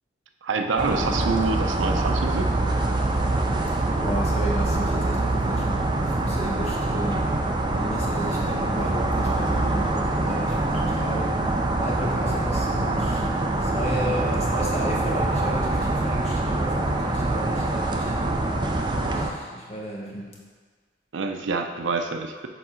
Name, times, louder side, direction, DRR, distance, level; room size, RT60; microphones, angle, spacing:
voice 1, 0.4-2.5 21.1-22.5, right 4 dB, 85° right, 5 dB, 0.5 m, -26 dB
sound 1, 0.8-19.3, right 2 dB, 25° right, 0.4 m, -24 dB
voice 2, 4.0-11.3 11.7-13.2 13.6-18.1 19.0-20.3, equal, 35° left, -3 dB, 1.1 m, -33 dB
6.9 x 3.7 x 4.3 m, 1.5 s
head